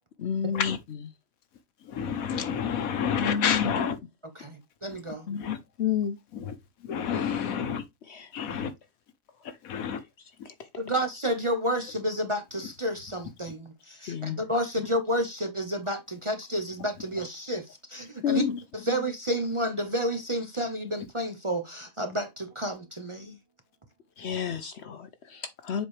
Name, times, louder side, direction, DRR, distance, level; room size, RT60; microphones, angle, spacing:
voice 1, 0.2-0.8 3.2-3.8 5.3-6.2 7.1-7.5 8.1-8.6 9.8-9.9 10.4-10.7 14.1-14.4 18.2-18.6 18.9-19.0 24.2-25.9, left 8 dB, 60° left, 0.8 m, -31 dB
voice 2, 1.8-4.0 5.4-5.6 6.3-6.5 6.8-7.8 8.3-8.7 9.4-10.0 10.4-10.5 17.2-17.3, left 7 dB, 75° left, 1.3 m, -29 dB
voice 3, 4.4-5.3 10.8-18.4 18.9-23.4, equal, 25° right, 0.8 m, -30 dB
7.2 x 4.4 x 3.2 m
omnidirectional pair, 1.5 m